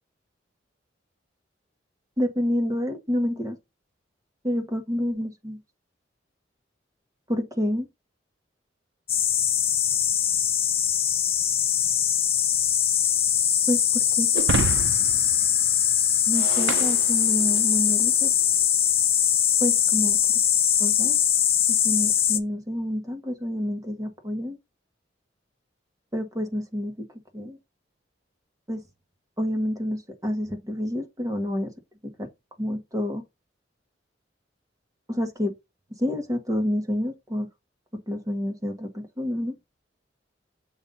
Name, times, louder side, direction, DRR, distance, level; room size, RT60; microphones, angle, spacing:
voice 1, 2.2-3.5 4.4-5.6 7.3-7.9 13.7-14.3 16.3-18.3 19.6-20.2 20.8-21.2 21.7-24.6 26.1-27.1 27.3-27.6 28.7-28.8 29.4-31.7 32.0-32.3 32.6-33.2 35.1-35.5 36.0-37.5 38.1-39.5, left 1 dB, 20° right, 1.4 m, -28 dB
sound 1, 9.1-22.4, left 9 dB, 30° left, 0.6 m, -22 dB
Shatter, 14.3-17.8, right 5 dB, 70° right, 0.5 m, -30 dB
7.1 x 2.6 x 5.4 m
head